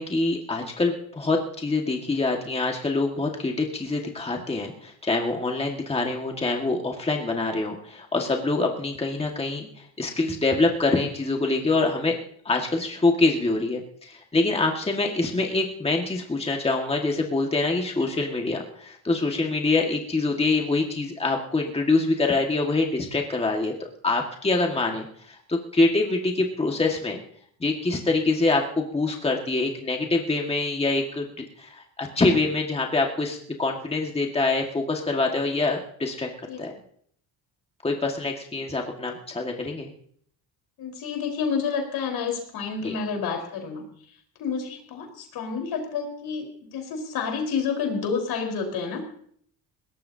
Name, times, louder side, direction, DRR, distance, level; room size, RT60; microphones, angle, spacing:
voice 1, 0.0-12.2 12.5-27.2 27.6-36.3 36.6-36.7 37.8-39.9 42.8-43.0, left 3 dB, 15° left, 1 dB, 1.8 m, -25 dB
voice 2, 40.8-43.8 44.4-49.0, left 5 dB, 75° left, 3 dB, 4.4 m, -29 dB
21.0 x 18.5 x 2.8 m, 0.63 s
cardioid pair, 125°, 38 cm